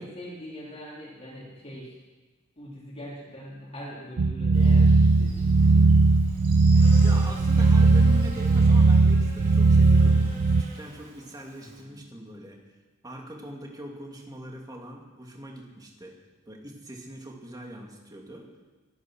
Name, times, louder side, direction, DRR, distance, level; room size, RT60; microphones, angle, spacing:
voice 1, 0.0-2.0 2.6-5.9 11.6-12.1, equal, 30° left, -5 dB, 3.3 m, -42 dB
sound 1, 4.2-10.6, right 3 dB, 85° right, 0.6 m, -18 dB
Buzz, 4.5-11.8, right 2 dB, 40° right, 3.9 m, -45 dB
voice 2, 7.0-12.6 13.0-16.1 16.5-18.5, right 1 dB, 20° right, 0 dB, 2.7 m, -42 dB
23.0 x 9.7 x 6.3 m, 1.2 s
head